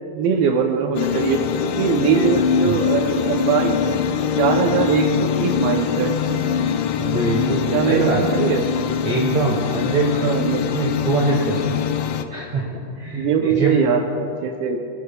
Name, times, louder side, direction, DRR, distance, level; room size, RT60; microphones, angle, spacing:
voice 1, 0.1-1.4 1.8-4.0 4.4-6.2 7.7-8.6 10.0-10.6 13.1-14.8, right 6 dB, 90° right, 3 dB, 2.1 m, -21 dB
sound 1, 1.0-12.3, left 7 dB, 80° left, 2.5 m, -23 dB
voice 2, 7.0-8.2 9.0-10.4 10.7-11.8 12.3-13.8, right 3 dB, 65° right, -3 dB, 1.7 m, -23 dB
24.0 x 10.5 x 2.2 m, 2.6 s
omnidirectional pair, 5.1 m